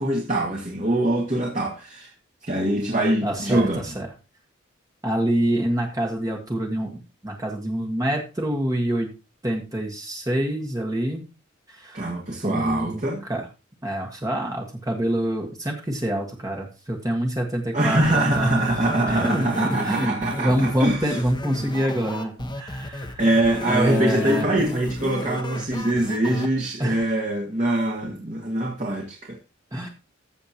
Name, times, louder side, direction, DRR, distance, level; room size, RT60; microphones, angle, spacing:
voice 1, 0.0-2.1 2.4-3.8 11.9-13.2 17.7-21.2 23.2-29.4, right 1 dB, 35° right, 1.9 m, -23 dB
voice 2, 3.2-4.1 5.0-9.1 9.4-11.2 11.7-12.0 12.4-13.5 13.8-18.6 19.1-23.2 23.7-24.5 26.8-27.1 29.7-29.9, right 1 dB, 15° right, 1.5 m, -26 dB
sound 1, 18.0-26.5, left 1 dB, 20° left, 1.1 m, -33 dB
14.5 x 6.7 x 2.9 m
head